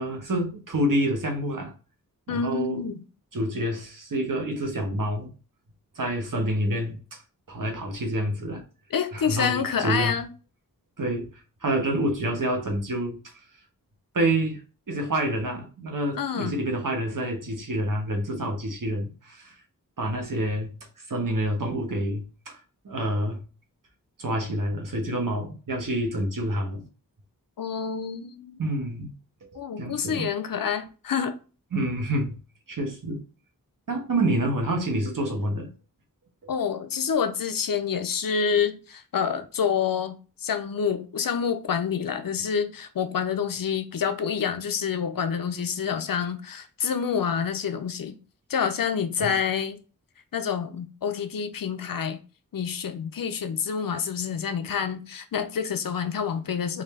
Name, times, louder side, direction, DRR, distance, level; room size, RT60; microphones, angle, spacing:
voice 1, 0.0-1.7 2.3-2.8 3.3-5.3 6.0-7.0 7.5-8.6 9.1-10.2 11.0-11.3 11.6-13.2 14.1-14.6 14.9-19.5 20.0-20.7 21.1-22.6 22.8-23.4 24.2-26.8 28.6-29.1 29.8-30.3 31.7-32.4 32.7-33.2 33.9-35.7 49.2-49.3, right 1 dB, 65° right, 1.1 m, -27 dB
voice 2, 2.3-3.0 8.9-10.3 16.1-16.6 27.6-28.7 29.5-31.4 36.5-48.2 48.5-49.8 50.3-52.2 52.5-56.8, left 7 dB, 75° left, 0.5 m, -28 dB
3.8 x 2.6 x 3.2 m
wide cardioid pair, 65°, 35 cm